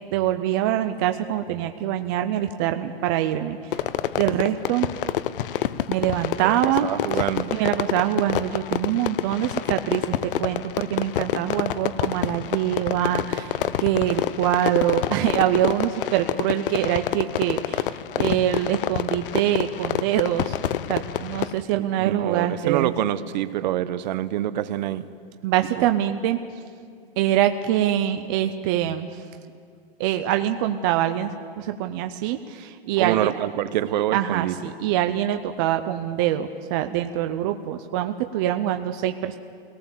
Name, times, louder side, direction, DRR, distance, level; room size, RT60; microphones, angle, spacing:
voice 1, 0.0-3.7 4.2-4.9 5.9-6.9 7.5-20.6 20.9-22.9 25.4-26.4 27.2-29.2 30.0-33.3 34.0-39.4, right 12 dB, 25° right, 7 dB, 0.4 m, -24 dB
Fireworks, 3.7-21.6, left 11 dB, 60° left, 0.7 m, -28 dB
voice 2, 6.8-7.5 21.7-25.1 33.0-34.5, right 12 dB, 50° right, 14 dB, 0.8 m, -26 dB
22.5 x 18.0 x 7.3 m, 2.2 s
hypercardioid pair, 160°, 30 cm